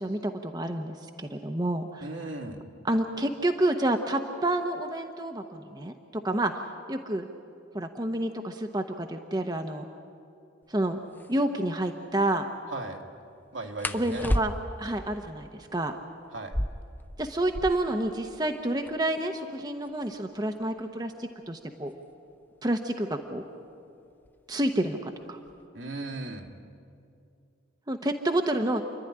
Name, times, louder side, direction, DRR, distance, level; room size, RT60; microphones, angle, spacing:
voice 1, 0.0-2.0 2.8-6.6 6.9-7.3 7.7-9.8 10.7-11.0 11.3-12.5 13.9-14.5 14.8-16.0 17.2-21.9 22.6-23.4 24.5-25.4 27.9-28.8, right 1 dB, 20° right, 5 dB, 0.9 m, -29 dB
voice 2, 2.0-2.6 12.7-13.0 13.5-14.3 16.3-16.6 25.7-26.5, right 2 dB, 75° right, 2 dB, 2.3 m, -37 dB
sound 1, 10.6-10.7 11.1-11.3 13.8-14.9 16.3-18.0 18.3-18.4 18.6-19.2 19.8-22.4 23.4-23.7 24.1-24.6 24.9-25.6, left 1 dB, 10° left, 0.6 m, -33 dB
29.0 x 11.5 x 10.0 m, 2.5 s
head